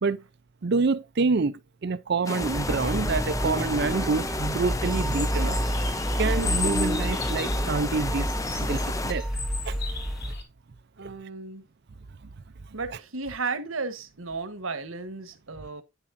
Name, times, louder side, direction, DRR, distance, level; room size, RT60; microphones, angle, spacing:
voice 1, 0.6-5.6 6.2-8.3 8.5-9.2 9.6-9.7, right 4 dB, 55° right, 0.5 m, -27 dB
sound 1, 2.3-9.1, left 2 dB, 15° left, 0.5 m, -33 dB
sound 2, 2.4-10.3, equal, ahead, 0.9 m, -30 dB
sound 3, 4.7-10.4, left 2 dB, 50° left, 2.6 m, -34 dB
voice 2, 11.0-11.6 12.7-15.8, right 4 dB, 90° right, 1.3 m, -34 dB
9.0 x 7.1 x 2.6 m
head